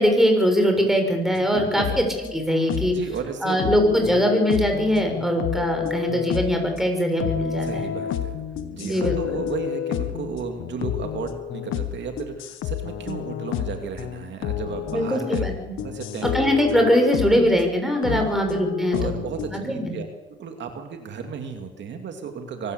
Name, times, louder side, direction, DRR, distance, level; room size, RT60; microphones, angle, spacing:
voice 1, 0.0-2.1 2.3-2.9 3.4-7.9 8.8-9.4 14.9-15.7 16.2-19.2 19.5-19.9, equal, ahead, 3 dB, 6.4 m, -22 dB
sound 1, 1.3-3.1 3.6-6.8 7.2-17.7 18.0-19.7, left 10 dB, 90° left, 1.7 m, -30 dB
voice 2, 1.4-2.0 2.8-3.6 7.6-8.4 8.7-15.4 15.8-16.3 18.1-18.4 18.9-22.7, right 6 dB, 65° right, 5 dB, 2.7 m, -34 dB
24.0 x 14.0 x 8.3 m, 1.1 s
cardioid pair, 90°, 20 cm